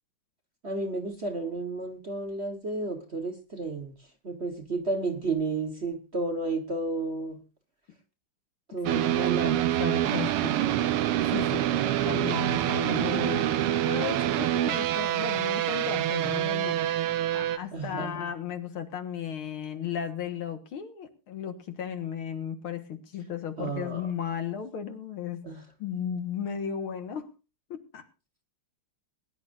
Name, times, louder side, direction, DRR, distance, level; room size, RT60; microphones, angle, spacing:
voice 1, 0.6-3.9 4.2-7.4 8.7-10.5 17.7-18.2 23.6-24.1 25.4-25.6, right 3 dB, 35° right, 5 dB, 1.5 m, -32 dB
sound 1, 8.9-17.6, right 12 dB, 90° right, 1.8 m, -26 dB
voice 2, 9.4-10.8 11.3-25.4 25.8-27.3 27.7-28.0, left 8 dB, 70° left, 7 dB, 2.4 m, -35 dB
21.5 x 11.0 x 2.6 m, 0.30 s
omnidirectional pair, 2.4 m